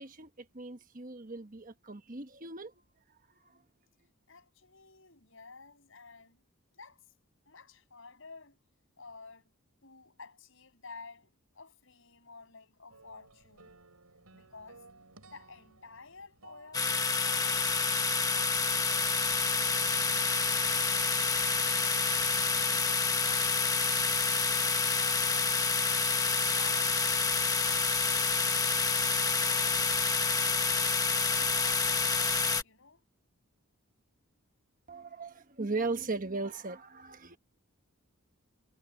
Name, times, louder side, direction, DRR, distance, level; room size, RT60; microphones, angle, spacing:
voice 1, 0.0-2.7 34.9-37.4, right 3 dB, 40° right, 1.3 m, -37 dB
voice 2, 4.3-6.4 6.7-7.0 7.4-8.6 9.0-9.5 9.8-13.8 14.3-14.8 15.3-19.3 20.2-21.9 22.8-25.9 26.5-27.3 27.5-27.9 28.6-29.9 30.4-31.0 31.3-33.0, left 4 dB, 60° left, 8.0 m, -52 dB
sound 1, 12.9-23.0, right 3 dB, 85° right, 5.8 m, -55 dB
sound 2, 16.7-32.6, left 4 dB, 15° left, 1.6 m, -28 dB
head